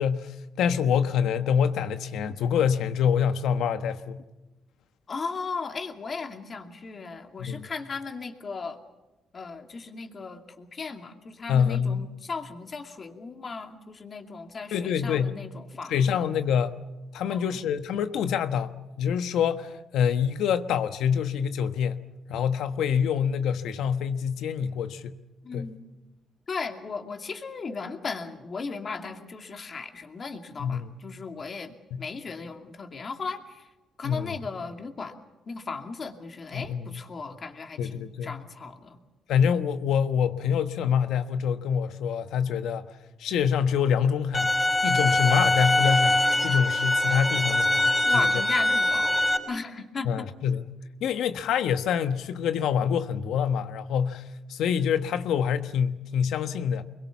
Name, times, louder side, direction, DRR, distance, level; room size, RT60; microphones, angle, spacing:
voice 1, 0.0-4.2 7.4-7.7 11.5-12.1 14.7-15.4 15.9-16.8 17.1-25.2 25.5-25.7 30.6-30.9 34.0-34.3 36.5-37.0 37.8-38.4 39.3-42.9 43.2-44.5 44.8-48.3 50.0-50.7 51.0-56.8, left 7 dB, 80° left, 1.2 m, -26 dB
voice 2, 5.1-8.8 9.3-16.2 17.3-17.6 25.4-25.8 26.5-33.7 34.0-35.2 35.5-39.0 48.0-50.3, left 4 dB, 40° left, 2.5 m, -37 dB
sound 1, 44.3-49.4, left 1 dB, 10° left, 5.6 m, -23 dB
25.0 x 22.0 x 7.2 m
cardioid pair, 90°, 0 cm